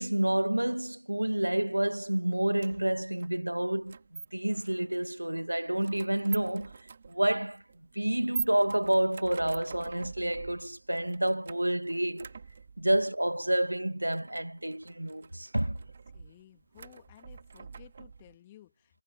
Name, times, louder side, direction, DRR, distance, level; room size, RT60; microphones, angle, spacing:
voice 1, 0.0-6.7 7.1-7.6 7.9-12.3 12.8-15.8, right 1 dB, 90° right, 1.1 m, -29 dB
sound 1, 2.6-18.4, right 5 dB, 35° right, 2.1 m, -45 dB
voice 2, 16.1-19.0, left 14 dB, 15° left, 2.4 m, -56 dB
figure-of-eight pair, 165°, 0 cm